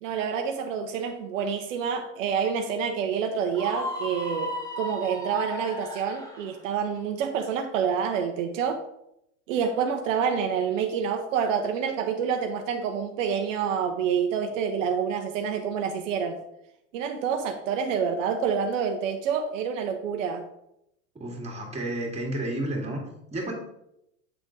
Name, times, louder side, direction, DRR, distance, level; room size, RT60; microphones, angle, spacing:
voice 1, 0.0-8.8 9.5-16.4 16.9-20.4, right 7 dB, 75° right, 5 dB, 0.7 m, -28 dB
Screaming, 3.5-6.5, left 1 dB, 10° left, 1.7 m, -35 dB
voice 2, 21.2-23.0 23.3-23.5, right 1 dB, 15° right, -1 dB, 2.0 m, -31 dB
7.9 x 3.6 x 3.8 m, 0.81 s
hypercardioid pair, 95°, 39 cm